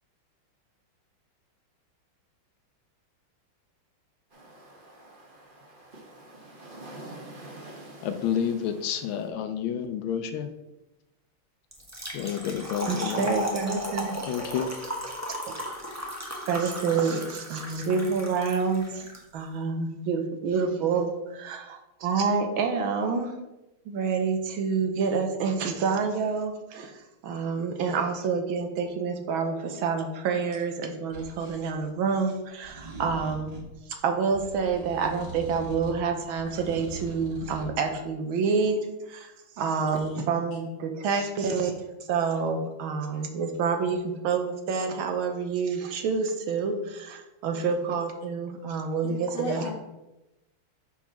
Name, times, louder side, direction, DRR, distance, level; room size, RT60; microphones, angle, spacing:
sound 1, 4.3-9.3, right 1 dB, 30° right, 1.1 m, -46 dB
voice 1, 8.0-10.5 12.1-13.3 14.2-14.7, left 8 dB, 75° left, 1.4 m, -29 dB
Trickle dribble / Fill (with liquid), 11.7-19.2, equal, 15° right, 0.7 m, -35 dB
voice 2, 12.9-14.3 15.5-15.6 16.5-19.1 19.3-23.4 23.9-33.5 34.0-38.8 39.1-49.7, right 5 dB, 75° right, 1.6 m, -28 dB
sound 2, 31.1-31.6 32.6-33.7 34.3-36.1 36.4-37.7, right 2 dB, 55° right, 2.2 m, -41 dB
voice 3, 49.0-49.7, left 1 dB, 45° left, 1.0 m, -36 dB
5.8 x 4.8 x 5.7 m
omnidirectional pair, 2.3 m